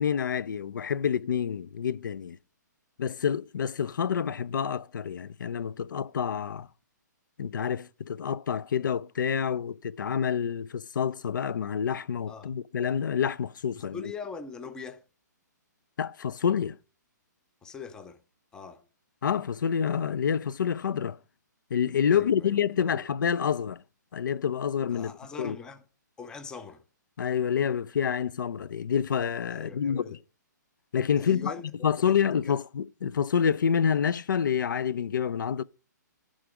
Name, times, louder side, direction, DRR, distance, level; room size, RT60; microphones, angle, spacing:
voice 1, 0.0-2.4 3.0-6.7 7.4-14.1 16.0-16.8 19.2-21.2 21.7-23.8 24.1-25.1 25.4-25.6 27.2-30.2 30.9-31.5 31.8-35.6, left 7 dB, 90° left, 0.4 m, -28 dB
voice 2, 13.8-15.0 17.6-18.2 18.5-18.8 22.1-23.0 24.9-25.8 26.2-26.8 29.5-30.2 31.2-31.7 32.1-32.2 32.4-32.6, left 5 dB, 5° left, 0.4 m, -42 dB
11.0 x 3.8 x 4.7 m
hypercardioid pair, 155°, 10 cm